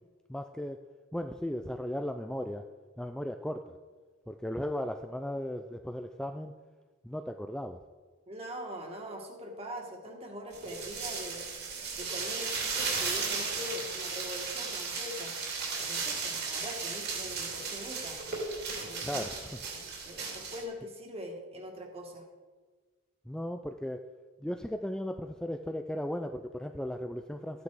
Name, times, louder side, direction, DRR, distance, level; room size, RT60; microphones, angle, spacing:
voice 1, 0.3-0.8 1.1-2.7 3.0-3.8 4.3-6.5 7.0-7.8 19.0-19.7 23.3-24.0 24.4-27.6, left 1 dB, 5° left, 6 dB, 0.4 m, -36 dB
voice 2, 8.3-11.5 11.9-15.3 15.8-18.2 18.8-19.1 20.1-22.2, equal, 30° right, 1 dB, 2.1 m, -42 dB
sound 1, 10.5-20.6, right 4 dB, 50° right, 3.1 m, -35 dB
14.0 x 9.6 x 4.9 m, 1.4 s
head